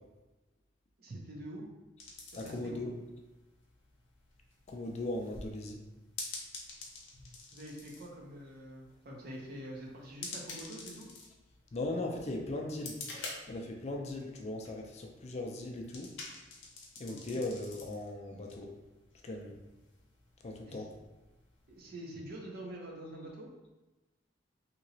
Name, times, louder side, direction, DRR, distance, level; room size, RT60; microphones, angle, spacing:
voice 1, 1.0-1.7 2.4-2.8 7.5-11.1 17.1-17.4 20.7-20.8 21.7-23.5, right 1 dB, 55° right, -2 dB, 0.7 m, -45 dB
sound 1, 2.0-21.9, left 3 dB, 75° left, 0.7 m, -49 dB
voice 2, 2.4-2.9 4.7-5.8 11.7-13.0 13.5-16.1 17.0-18.7 19.2-19.6 20.4-20.9, left 2 dB, 35° left, 1 dB, 0.4 m, -38 dB
2.9 x 2.8 x 2.7 m, 1.1 s
head